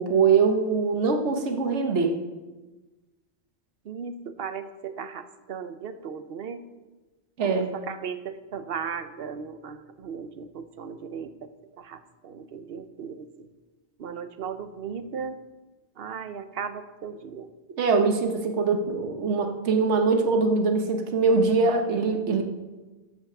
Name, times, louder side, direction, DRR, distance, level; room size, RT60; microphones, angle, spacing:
voice 1, 0.0-2.1 7.4-7.7 17.8-22.4, right 4 dB, 80° right, 4 dB, 1.3 m, -23 dB
voice 2, 3.8-6.6 7.4-13.5 14.0-15.4 16.0-17.5, right 6 dB, 60° right, 11 dB, 0.9 m, -37 dB
13.5 x 5.7 x 6.0 m, 1.2 s
omnidirectional pair, 1.2 m